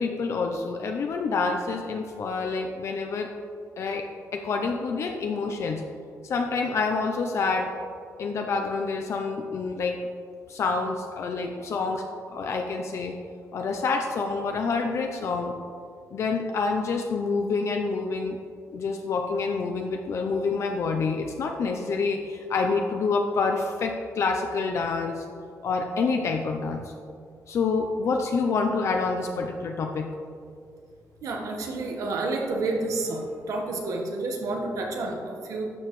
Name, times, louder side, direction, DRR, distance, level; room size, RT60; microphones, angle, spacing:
voice 1, 0.0-3.3 3.8-5.8 6.2-7.7 8.2-10.0 10.5-13.1 13.5-15.5 16.1-18.4 18.7-25.2 25.6-26.9 27.5-30.1, left 4 dB, 55° left, 3 dB, 0.6 m, -27 dB
voice 2, 31.2-35.7, right 2 dB, 70° right, 2 dB, 1.4 m, -30 dB
12.0 x 7.1 x 3.1 m, 2.3 s
wide cardioid pair, 155°, 6 cm